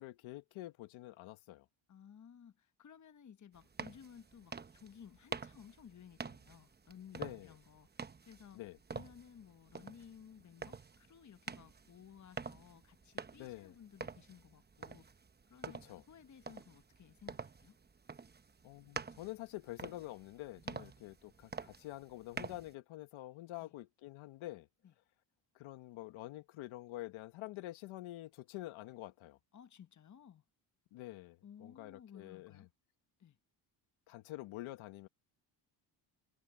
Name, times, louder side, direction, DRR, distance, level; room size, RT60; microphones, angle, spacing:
voice 1, 0.0-1.6 7.2-7.5 8.5-8.8 13.4-13.7 15.8-16.0 18.6-24.7 25.5-29.4 30.9-32.6 34.1-35.1, left 16 dB, 85° left, 1.3 m, -47 dB
voice 2, 1.9-8.6 8.9-15.1 15.5-17.8 20.6-20.9 23.6-23.7 24.8-24.9 29.5-30.4 31.4-32.7 33.2-33.4, left 8 dB, 40° left, 1.2 m, -57 dB
sound 1, 3.5-22.7, right 5 dB, 20° right, 1.0 m, -48 dB
cardioid pair, 90°, 47 cm